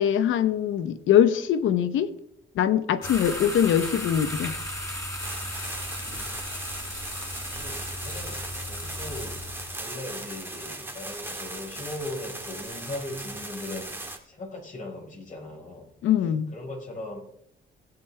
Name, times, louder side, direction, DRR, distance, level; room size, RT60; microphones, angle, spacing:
voice 1, 0.0-2.1 2.5-4.5 16.0-16.5, left 9 dB, 80° left, 12 dB, 0.9 m, -22 dB
sound 1, 3.0-9.8, left 1 dB, 15° left, 4.1 m, -35 dB
sound 2, 5.2-14.2, right 2 dB, 10° right, 1.9 m, -38 dB
voice 2, 7.6-9.4 9.8-13.9 14.2-15.8 16.5-17.2, left 1 dB, 40° left, -1 dB, 4.9 m, -38 dB
18.0 x 8.2 x 3.4 m, 0.71 s
cardioid pair, 90°, 20 cm